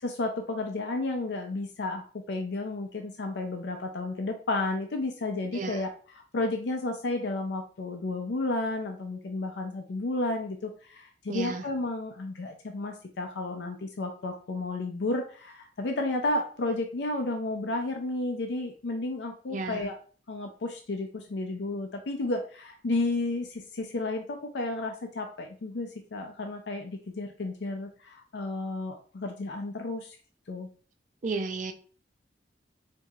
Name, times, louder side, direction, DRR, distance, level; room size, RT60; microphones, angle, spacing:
voice 1, 0.0-20.0 20.3-30.2 30.5-30.7, left 2 dB, 75° left, 4 dB, 0.5 m, -32 dB
voice 2, 5.5-5.8 11.3-11.6 19.5-19.8 31.2-31.7, right 3 dB, 45° right, 6 dB, 0.5 m, -33 dB
4.6 x 2.7 x 2.4 m, 0.40 s
head